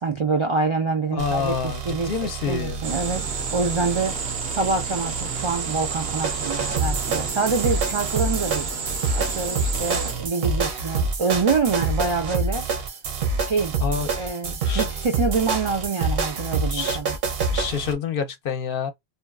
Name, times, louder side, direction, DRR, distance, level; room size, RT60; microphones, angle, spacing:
voice 1, 0.0-4.2 4.5-8.7 9.2-12.7 13.4-13.7 14.2-17.2, right 4 dB, 50° right, 0.3 m, -26 dB
voice 2, 1.1-2.8 13.8-14.1 14.7-14.9 16.7-17.0 17.5-18.9, left 6 dB, 65° left, 0.7 m, -27 dB
sound 1, 1.2-17.9, right 4 dB, 70° right, 0.9 m, -27 dB
sound 2, 2.8-10.1, right 5 dB, 90° right, 1.0 m, -30 dB
2.7 x 2.3 x 2.3 m
omnidirectional pair, 1.1 m